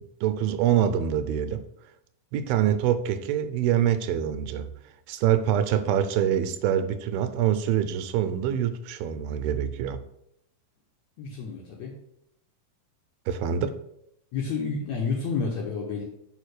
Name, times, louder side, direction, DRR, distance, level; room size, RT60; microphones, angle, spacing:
voice 1, 0.2-1.7 2.3-4.7 5.1-10.0 13.3-13.8, right 10 dB, 85° right, 10 dB, 2.4 m, -25 dB
voice 2, 11.2-12.0 14.3-16.0, left 5 dB, 70° left, -2 dB, 1.7 m, -30 dB
5.2 x 5.0 x 6.4 m, 0.77 s
omnidirectional pair, 4.3 m